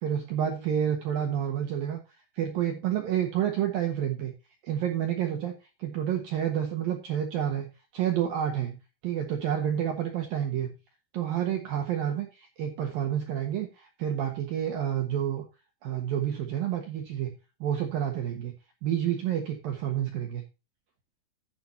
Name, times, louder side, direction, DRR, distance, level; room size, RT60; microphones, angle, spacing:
voice 1, 0.0-2.0 2.3-4.3 4.6-10.7 11.1-15.5 15.8-17.3 17.6-18.5 18.8-20.4, right 10 dB, 70° right, 4 dB, 2.3 m, -29 dB
12.0 x 9.4 x 2.8 m, 0.29 s
omnidirectional pair, 5.8 m